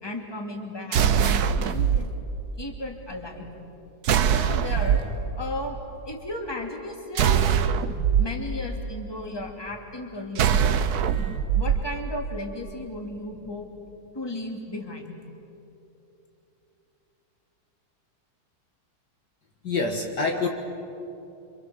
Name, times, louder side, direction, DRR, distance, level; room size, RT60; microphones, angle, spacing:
voice 1, 0.0-2.1 2.6-3.5 4.3-5.8 6.1-7.4 8.2-10.6 11.5-13.7 14.1-15.2, left 1 dB, 10° left, 2 dB, 2.6 m, -35 dB
sound 1, 0.9-2.0 4.0-5.1 7.2-8.2 10.4-11.8, right 8 dB, 60° right, 1.2 m, -22 dB
voice 2, 19.6-20.5, left 3 dB, 55° left, 2 dB, 2.1 m, -26 dB
28.0 x 26.0 x 7.1 m, 2.9 s
omnidirectional pair, 2.3 m